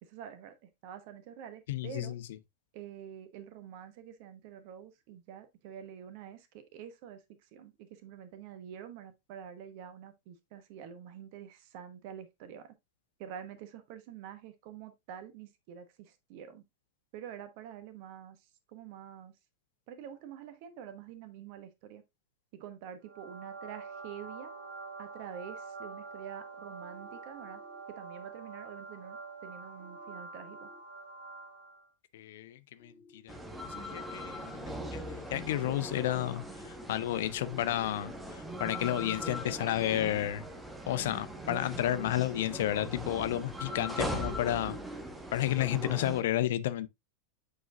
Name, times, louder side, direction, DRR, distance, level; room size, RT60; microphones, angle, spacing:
voice 1, 0.0-2.2 2.7-12.7 13.2-16.6 17.1-19.4 19.9-22.0 22.5-24.5 25.0-27.6 27.9-30.7, right 9 dB, 45° right, 1.1 m, -47 dB
voice 2, 1.7-2.2 32.1-33.4 33.6-40.4 40.9-44.8 45.3-46.9, left 13 dB, 55° left, 0.5 m, -32 dB
sound 1, 23.0-31.9, right 4 dB, 65° right, 2.0 m, -46 dB
sound 2, 26.8-27.8 29.8-30.8 32.8-33.8, left 4 dB, 25° left, 1.7 m, -58 dB
sound 3, 33.3-46.2, equal, 10° right, 1.2 m, -40 dB
8.0 x 4.7 x 2.5 m
figure-of-eight pair, 90°, 0 cm